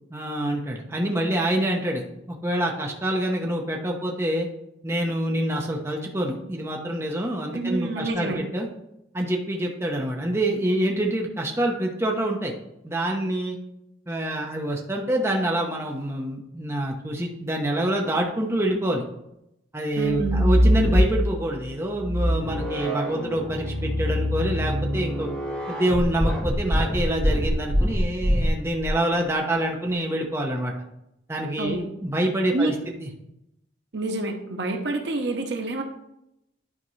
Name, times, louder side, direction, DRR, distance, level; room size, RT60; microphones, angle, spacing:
voice 1, 0.1-4.5 4.8-8.7 9.1-12.5 12.8-13.6 14.1-19.1 19.7-25.3 25.7-30.7 31.3-32.7 33.0-33.1, right 1 dB, 15° right, 0 dB, 0.7 m, -26 dB
voice 2, 7.5-8.4 20.0-20.5 31.6-31.8 32.5-32.7 33.9-35.8, right 2 dB, 60° right, 4 dB, 0.8 m, -27 dB
sound 1, 20.0-21.4 21.9-28.9, equal, 10° left, 1.7 m, -24 dB
11.0 x 4.4 x 3.1 m, 0.85 s
head